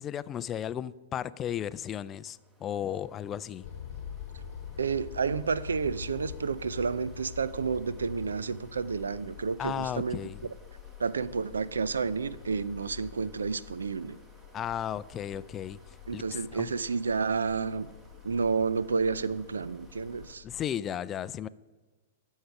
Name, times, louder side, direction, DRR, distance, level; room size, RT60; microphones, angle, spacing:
voice 1, 0.0-3.7 9.6-10.4 14.5-15.8 16.1-16.7 20.4-21.5, left 10 dB, 25° left, 17 dB, 0.3 m, -34 dB
sound 1, 1.4-20.4, right 1 dB, 20° right, 1.6 m, -59 dB
sound 2, 3.6-20.7, left 9 dB, 60° left, 0.9 m, -46 dB
voice 2, 4.8-10.2 11.0-14.2 16.1-17.9 18.2-20.4, right 5 dB, 85° right, 18 dB, 0.4 m, -30 dB
11.5 x 6.5 x 5.8 m, 1.3 s
hypercardioid pair, 115°, 0 cm